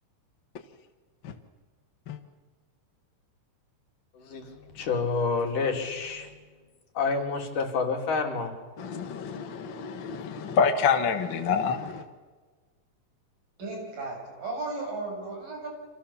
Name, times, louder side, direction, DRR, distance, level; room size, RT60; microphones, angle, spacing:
voice 1, 4.2-6.4 7.0-8.5, left 4 dB, 70° left, 4.5 m, -29 dB
voice 2, 8.8-12.0, left 6 dB, 45° left, 1.7 m, -27 dB
voice 3, 13.6-15.7, right 2 dB, 80° right, 8.5 m, -35 dB
30.0 x 26.5 x 7.2 m
omnidirectional pair, 3.8 m